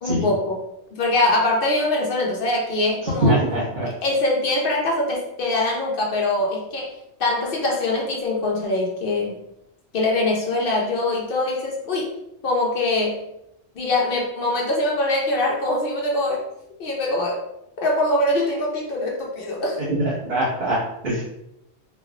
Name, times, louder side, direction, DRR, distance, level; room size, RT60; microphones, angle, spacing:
voice 1, 0.0-0.6 0.9-3.4 4.0-6.9 7.2-9.4 9.9-12.1 12.4-13.2 13.7-16.4 16.8-17.4 17.8-19.8, left 2 dB, 55° left, -1 dB, 0.8 m, -23 dB
voice 2, 3.0-3.9 19.9-21.2, right 1 dB, 75° right, -8 dB, 1.4 m, -22 dB
3.1 x 2.4 x 2.4 m, 0.83 s
omnidirectional pair, 1.2 m